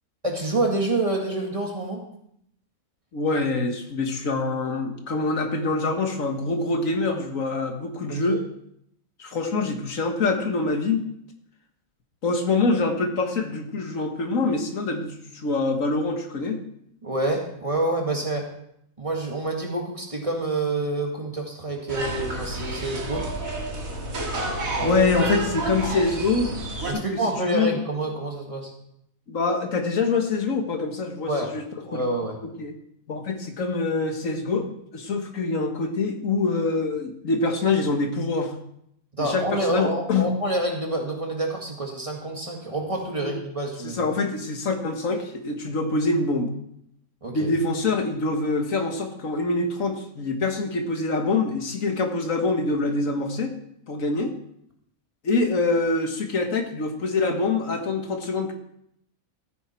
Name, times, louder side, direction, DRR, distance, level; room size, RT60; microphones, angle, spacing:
voice 1, 0.2-2.0 8.1-8.4 17.0-18.5 19.0-23.3 24.7-25.1 26.9-28.7 31.3-31.5 31.9-32.4 39.2-44.0 47.2-47.5, right 2 dB, 25° right, 1 dB, 2.0 m, -27 dB
voice 2, 3.1-8.4 9.2-11.0 12.2-16.6 24.8-26.6 26.9-27.2 27.5-27.8 29.3-31.6 31.9-32.0 32.6-32.7 33.1-38.5 39.2-40.3 43.2-43.3 43.8-46.5 47.3-53.5 53.9-54.3 55.2-58.5, left 3 dB, 70° left, 5 dB, 1.8 m, -25 dB
sound 1, 21.9-26.9, right 2 dB, 75° right, 2.4 m, -30 dB
14.5 x 9.4 x 4.4 m, 0.73 s
omnidirectional pair, 1.5 m